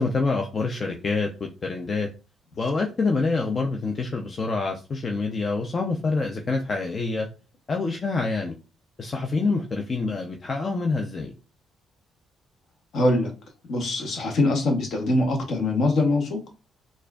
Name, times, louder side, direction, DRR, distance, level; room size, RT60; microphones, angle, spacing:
voice 1, 0.0-2.1 2.6-7.3 7.7-8.5 9.0-11.3, left 3 dB, 45° left, 3 dB, 0.5 m, -26 dB
voice 2, 12.9-13.3 13.7-16.4, left 2 dB, 65° left, 2 dB, 1.0 m, -23 dB
4.2 x 2.5 x 2.3 m, 0.32 s
hypercardioid pair, 50°, 0 cm